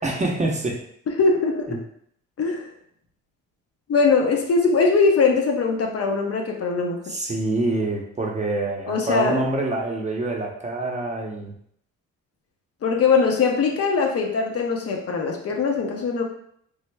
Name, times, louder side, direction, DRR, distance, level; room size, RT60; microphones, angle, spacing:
voice 1, 0.0-0.8 1.7-1.8 7.0-11.5, right 2 dB, 25° right, 0 dB, 0.6 m, -26 dB
voice 2, 1.1-1.8 2.4-2.7 3.9-7.2 8.9-9.4 12.8-16.2, left 4 dB, 50° left, 1 dB, 0.7 m, -21 dB
3.3 x 2.1 x 3.3 m, 0.67 s
cardioid pair, 90°, 30 cm